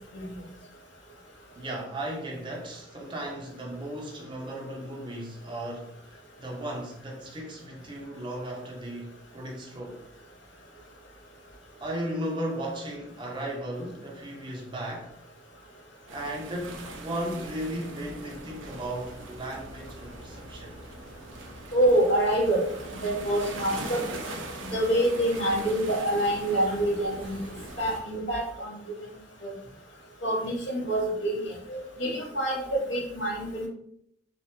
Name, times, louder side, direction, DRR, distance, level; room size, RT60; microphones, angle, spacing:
voice 1, 1.5-10.0 11.8-15.1 16.1-20.8, right 1 dB, 25° right, 0.6 m, -36 dB
sound 1, 16.1-28.0, right 2 dB, 90° right, 0.5 m, -41 dB
voice 2, 21.7-22.6 22.9-24.0 24.6-27.4 27.8-28.7 29.4-29.5 30.2-33.7, right 1 dB, 70° left, 1.0 m, -26 dB
3.2 x 2.1 x 2.9 m
head